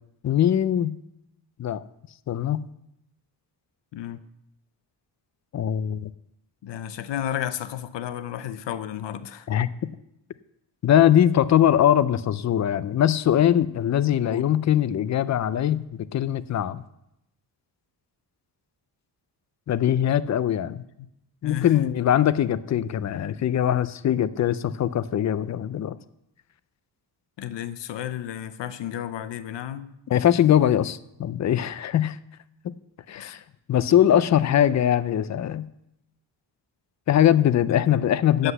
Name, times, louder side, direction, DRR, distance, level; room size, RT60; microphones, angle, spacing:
voice 1, 0.2-0.9 1.6-1.8 2.3-2.6 5.5-6.1 9.5-9.9 10.8-15.8 16.1-16.8 19.7-20.8 21.4-26.0 30.1-32.2 32.6-32.8 33.1-33.4 33.7-35.7 37.1-38.5, left 10 dB, 45° left, 16 dB, 0.4 m, -21 dB
voice 2, 6.6-9.5 14.3-14.4 21.4-21.7 27.4-29.9 33.2-33.4 37.7-38.0 38.4-38.5, left 11 dB, 80° left, 13 dB, 0.7 m, -32 dB
8.0 x 7.8 x 8.0 m, 0.83 s
wide cardioid pair, 170°, 43 cm